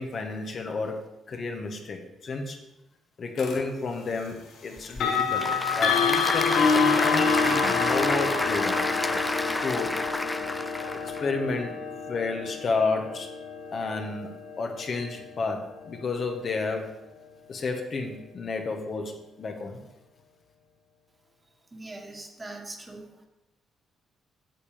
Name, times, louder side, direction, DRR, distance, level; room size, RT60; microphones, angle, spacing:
voice 1, 0.0-2.6 3.2-5.5 5.7-8.8 9.6-10.0 10.8-13.3 13.7-14.3 14.6-17.0 17.5-19.8, left 3 dB, 50° left, 3 dB, 1.4 m, -31 dB
sound 1, 3.4-3.6 4.9-15.8, left 5 dB, 75° left, 1.4 m, -28 dB
Applause / Crowd, 4.8-11.2, left 2 dB, 15° left, 0.4 m, -29 dB
voice 2, 21.7-23.1, right 2 dB, 20° right, 3 dB, 1.7 m, -41 dB
8.4 x 6.8 x 5.1 m, 0.95 s
cardioid pair, 90°, 0 cm